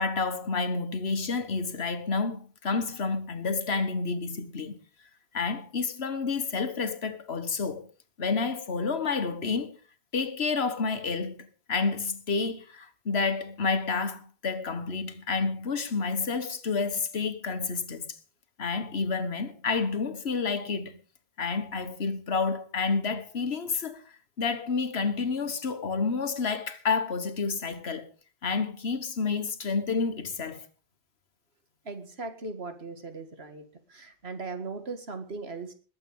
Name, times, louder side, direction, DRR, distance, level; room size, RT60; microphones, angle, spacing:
voice 1, 0.0-4.8 5.3-7.9 8.2-9.8 10.1-18.2 18.6-21.0 21.4-28.1 28.4-30.7, left 4 dB, 85° left, 1.6 m, -29 dB
voice 2, 31.8-33.6 33.9-35.7, right 3 dB, 80° right, 2.2 m, -38 dB
20.5 x 7.9 x 5.4 m
omnidirectional pair, 1.0 m